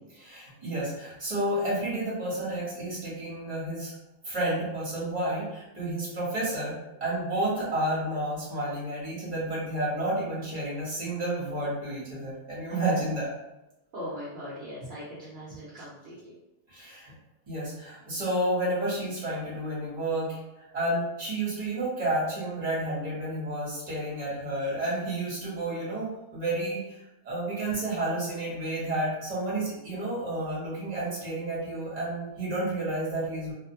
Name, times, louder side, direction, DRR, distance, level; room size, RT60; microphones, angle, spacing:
voice 1, 0.2-3.9 4.2-13.3 16.7-17.1 17.5-27.0 27.2-33.5, right 1 dB, 35° right, -7 dB, 1.2 m, -31 dB
voice 2, 13.9-16.3, equal, 60° right, -8 dB, 0.9 m, -40 dB
2.5 x 2.1 x 2.7 m, 0.94 s
omnidirectional pair, 1.2 m